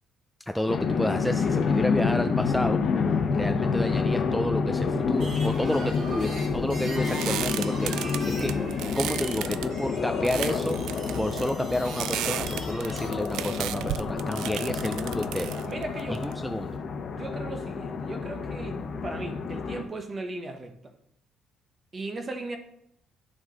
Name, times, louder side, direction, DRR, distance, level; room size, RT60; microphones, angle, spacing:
voice 1, 0.5-2.8 3.3-10.8 11.2-15.5 16.2-16.8, left 1 dB, 5° left, 0.4 m, -30 dB
sound 1, 0.7-19.8, left 5 dB, 45° left, 1.0 m, -28 dB
sound 2, 5.1-13.1, right 1 dB, 55° right, 3.1 m, -41 dB
voice 2, 5.6-5.9 6.3-6.4 15.7-16.6 17.1-20.9 21.9-22.6, right 2 dB, 25° right, 1.0 m, -37 dB
sound 3, 6.4-16.7, right 12 dB, 85° right, 0.3 m, -35 dB
10.5 x 6.0 x 3.9 m
cardioid pair, 150°, 0 cm